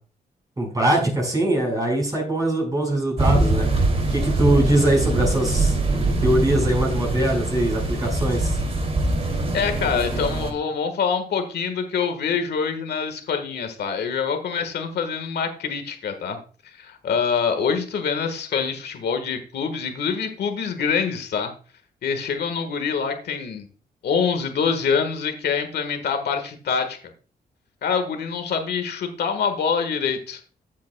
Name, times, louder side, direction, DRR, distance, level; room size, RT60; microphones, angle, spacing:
voice 1, 0.6-3.7 4.1-5.8 6.2-8.6, right 1 dB, 20° right, -1 dB, 4.6 m, -22 dB
sound 1, 3.2-10.5, right 2 dB, 40° right, 2.7 m, -23 dB
voice 2, 9.5-16.4 16.6-21.5 22.0-23.7 24.0-27.0 27.8-30.4, left 6 dB, 90° left, 7 dB, 1.5 m, -25 dB
14.5 x 8.4 x 2.2 m, 0.38 s
wide cardioid pair, 130°, 16 cm